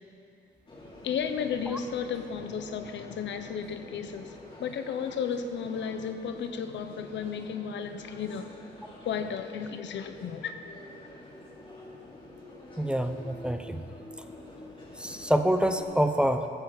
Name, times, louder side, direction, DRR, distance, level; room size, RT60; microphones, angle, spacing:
sound 1, 0.7-15.8, left 1 dB, 30° left, 3.7 m, -47 dB
voice 1, 1.0-8.5 9.0-10.6, left 7 dB, 80° left, 8 dB, 0.9 m, -34 dB
voice 2, 12.8-13.8 15.0-16.5, equal, 5° right, 7 dB, 0.6 m, -26 dB
18.0 x 15.0 x 4.1 m, 2.7 s
cardioid pair, 135°, 19 cm